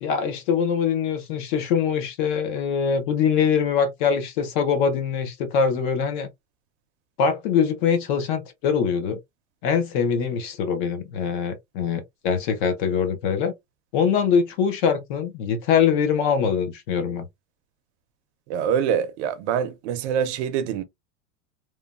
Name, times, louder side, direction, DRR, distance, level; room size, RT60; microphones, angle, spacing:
voice 1, 0.0-6.3 7.2-9.2 9.6-13.5 13.9-17.2, left 6 dB, 40° left, 0.4 m, -23 dB
voice 2, 18.5-20.8, right 8 dB, 60° right, 0.6 m, -25 dB
3.0 x 2.1 x 2.2 m
supercardioid pair, 180°, 38 cm